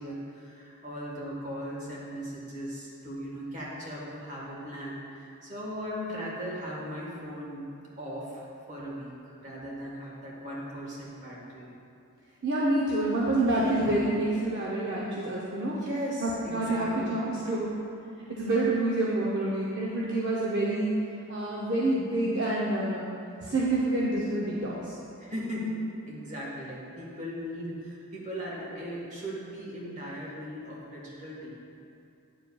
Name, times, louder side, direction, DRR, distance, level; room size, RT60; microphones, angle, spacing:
voice 1, 0.0-7.7 8.0-11.7 15.7-17.6 25.2-31.5, equal, 35° right, -5 dB, 1.4 m, -38 dB
voice 2, 12.4-15.7 16.2-17.7 18.3-20.9 21.3-23.0 23.4-24.8, right 2 dB, 50° right, -5 dB, 0.6 m, -27 dB
8.9 x 7.2 x 2.3 m, 2.6 s
head